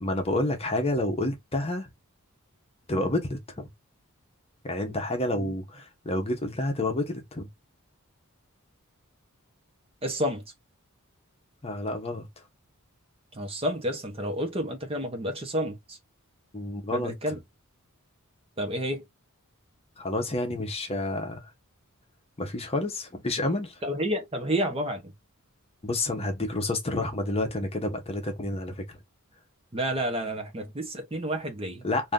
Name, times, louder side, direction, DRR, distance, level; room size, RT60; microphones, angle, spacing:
voice 1, 0.0-1.9 2.9-3.7 4.6-7.5 11.6-12.3 16.5-17.4 20.0-21.5 22.4-23.8 25.8-29.0 31.8-32.1, left 2 dB, 25° left, 0.8 m, -29 dB
voice 2, 10.0-10.4 13.4-16.0 16.9-17.4 18.6-19.0 23.8-25.0 29.7-31.8, equal, 25° right, 0.8 m, -30 dB
2.7 x 2.6 x 3.5 m
head